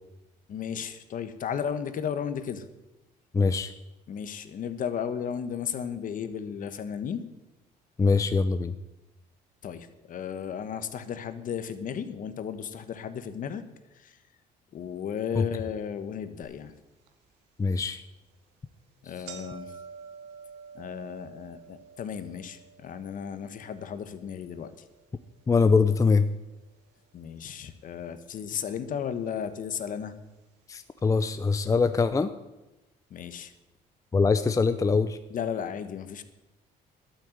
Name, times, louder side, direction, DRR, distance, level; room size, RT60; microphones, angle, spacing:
voice 1, 0.5-2.7 4.1-7.2 9.6-13.6 13.9-14.2 14.7-16.7 19.0-19.7 20.7-24.7 27.1-30.1 33.1-33.5 35.3-36.2, left 8 dB, 55° left, 11 dB, 1.3 m, -34 dB
voice 2, 3.3-3.7 8.0-8.7 15.4-15.5 17.6-18.0 25.5-26.3 30.7-32.3 34.1-35.2, left 4 dB, 20° left, 10 dB, 0.6 m, -23 dB
sound 1, 16.4-16.5 17.1-17.2 18.0-18.2 18.5-18.6 18.9-27.1 27.4-28.1 28.9-29.0 29.9-30.0 30.3-30.4 31.0-31.1, right 5 dB, 90° right, 1.8 m, -49 dB
12.0 x 9.1 x 7.9 m, 1.0 s
cardioid pair, 110°, 17 cm